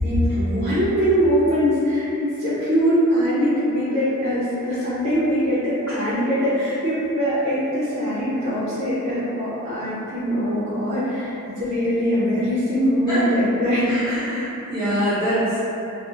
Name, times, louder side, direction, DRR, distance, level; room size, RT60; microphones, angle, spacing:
voice 1, 0.0-14.0, equal, 30° right, -10 dB, 0.4 m, -22 dB
voice 2, 13.9-15.6, equal, 20° left, -14 dB, 1.1 m, -24 dB
2.4 x 2.0 x 2.8 m, 2.9 s
head